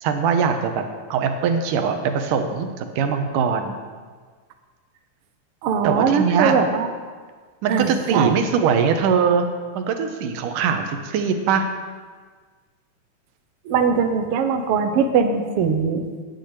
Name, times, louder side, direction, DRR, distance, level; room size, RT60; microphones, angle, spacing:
voice 1, 0.0-0.8 1.1-3.8 5.8-6.6 7.6-9.5 9.8-11.7, right 6 dB, 90° right, 6 dB, 2.4 m, -21 dB
voice 2, 5.6-6.9 7.7-8.3 13.7-16.0, right 6 dB, 70° right, 5 dB, 1.4 m, -21 dB
10.0 x 6.5 x 8.0 m, 1.5 s
omnidirectional pair, 3.7 m